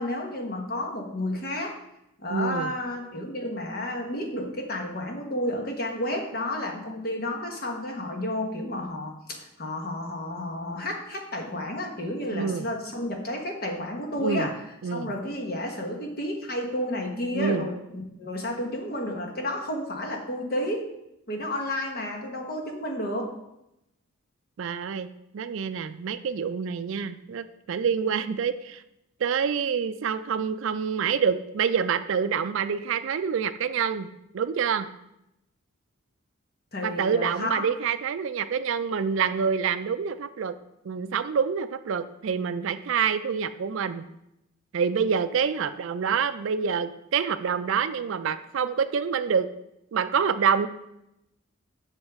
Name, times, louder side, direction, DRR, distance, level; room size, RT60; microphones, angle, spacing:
voice 1, 0.0-1.8 2.2-14.5 14.9-20.8 21.3-23.3 36.7-37.6, left 1 dB, 45° left, 2 dB, 1.2 m, -31 dB
voice 2, 2.3-2.7 12.3-12.7 14.2-14.5 14.8-15.1 17.3-17.7 24.6-25.1 25.3-28.8 29.2-34.1 34.3-34.9 36.8-40.5 40.8-44.0 44.7-49.5 49.9-50.7, right 6 dB, 60° right, 12 dB, 0.4 m, -27 dB
8.0 x 6.4 x 3.5 m, 0.85 s
head